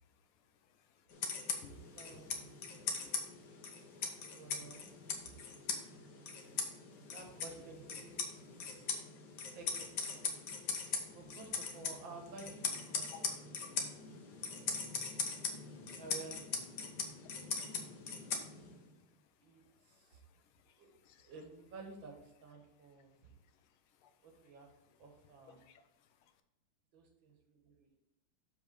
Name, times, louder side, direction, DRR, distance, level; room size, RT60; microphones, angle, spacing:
voice 1, 0.6-1.1 1.5-2.2 2.7-3.5 4.0-4.2 5.3-6.1 6.4-6.8 8.9-9.0 10.9-11.0 13.6-13.7 14.4-14.5 17.2-17.3 17.8-17.9 19.9-20.0 20.3-21.3 24.0-24.1 25.6-25.8, left 8 dB, 80° left, 7 dB, 1.6 m, -63 dB
sound 1, 1.1-18.9, left 5 dB, 60° left, 1.4 m, -41 dB
voice 2, 1.9-2.8 4.3-4.9 7.1-8.9 9.5-10.2 11.1-14.1 15.9-17.0 19.4-20.2 20.8-20.9 21.2-23.3 24.2-24.7 25.0-25.6 26.9-28.0, right 3 dB, 65° right, 2 dB, 2.1 m, -53 dB
6.8 x 4.8 x 5.1 m, 0.84 s
omnidirectional pair, 2.3 m